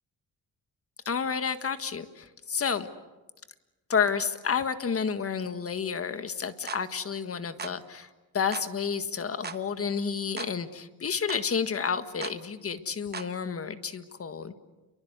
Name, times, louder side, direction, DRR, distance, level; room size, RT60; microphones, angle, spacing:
voice 1, 1.0-2.9 3.9-8.1 8.3-14.5, left 6 dB, 40° left, 10 dB, 1.6 m, -30 dB
sound 1, 6.7-6.9 7.6-7.8 8.5-8.7 9.4-9.6 10.4-10.6 11.3-11.5 12.2-12.4 13.1-13.3, right 5 dB, 30° right, 1.1 m, -38 dB
30.0 x 23.5 x 8.1 m, 1.1 s
cardioid pair, 120°, 35 cm